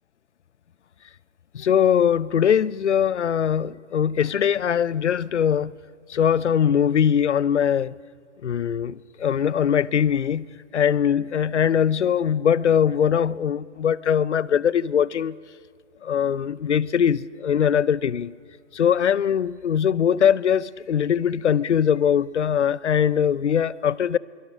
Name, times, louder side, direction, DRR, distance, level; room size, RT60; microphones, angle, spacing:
voice 1, 1.5-5.7 6.1-7.9 8.4-10.5 10.7-15.4 16.0-18.3 18.7-24.2, left 8 dB, 70° left, 0.7 m, -21 dB
25.0 x 23.5 x 6.2 m
hypercardioid pair, 170°, 36 cm